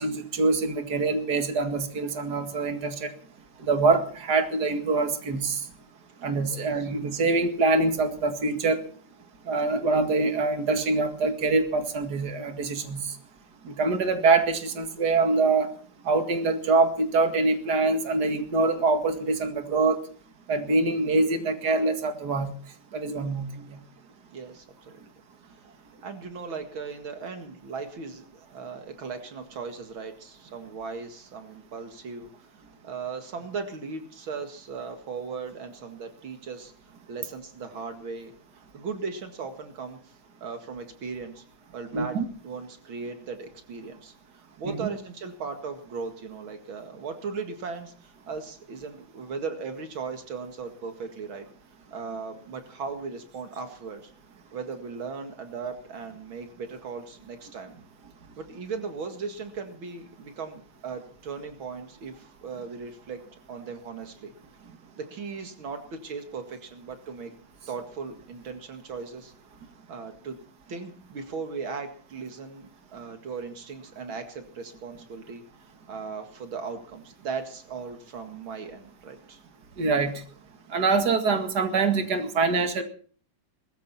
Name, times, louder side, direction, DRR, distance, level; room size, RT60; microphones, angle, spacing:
voice 1, 0.0-3.1 3.6-5.7 6.2-8.8 9.5-13.2 13.6-15.7 16.0-20.0 20.5-22.5 22.9-23.8 41.9-42.2 44.7-44.9 79.8-80.2 80.7-82.8, right 3 dB, 55° right, 6 dB, 2.6 m, -24 dB
voice 2, 6.5-6.9 24.3-25.0 26.0-32.3 32.8-36.7 37.1-38.3 38.7-40.1 40.4-41.4 41.7-42.2 42.4-51.5 51.9-54.1 54.5-57.8 58.4-63.2 63.5-64.3 64.9-67.3 67.7-69.3 69.9-70.4 70.7-75.4 75.9-79.4, right 5 dB, 85° right, 6 dB, 2.8 m, -37 dB
20.5 x 14.5 x 4.3 m, 0.43 s
omnidirectional pair, 2.2 m